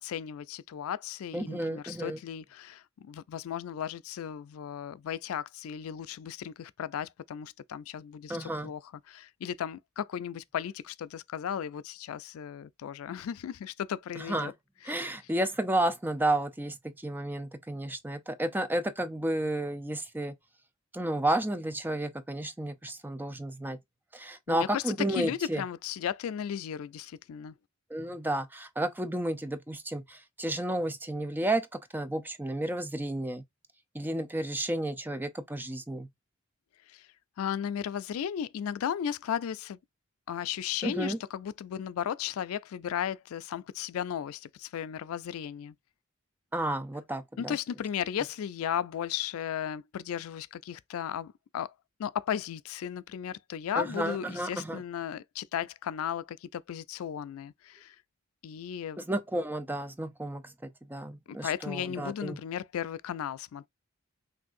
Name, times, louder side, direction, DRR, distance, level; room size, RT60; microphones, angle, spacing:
voice 1, 0.0-14.5 14.9-15.1 24.5-27.5 36.9-37.1 37.4-39.8 40.3-45.7 47.4-51.7 52.0-58.0 58.4-59.0 61.3-63.7, left 9 dB, 85° left, 0.3 m, -35 dB
voice 2, 1.3-2.2 8.3-8.7 14.2-14.5 14.8-20.3 20.9-23.8 24.1-25.6 27.9-33.4 33.9-36.1 40.8-41.2 46.5-47.6 53.8-54.8 59.0-62.4, right 1 dB, 10° right, 0.5 m, -32 dB
6.0 x 2.6 x 2.5 m
head